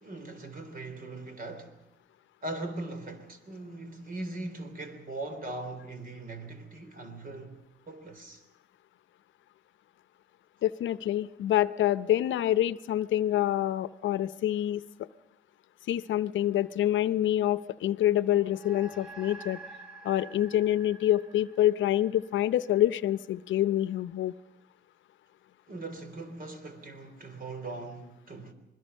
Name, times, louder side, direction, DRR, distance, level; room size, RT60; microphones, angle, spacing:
voice 1, 0.0-1.8 2.4-8.4 25.7-28.5, right 2 dB, 45° right, 3.5 m, -40 dB
voice 2, 10.6-15.1 15.9-19.6 20.0-24.3, left 12 dB, 75° left, 0.7 m, -26 dB
sound 1, 18.5-23.2, right 2 dB, 5° right, 3.1 m, -49 dB
28.0 x 21.0 x 5.5 m
cardioid pair, 90°, 20 cm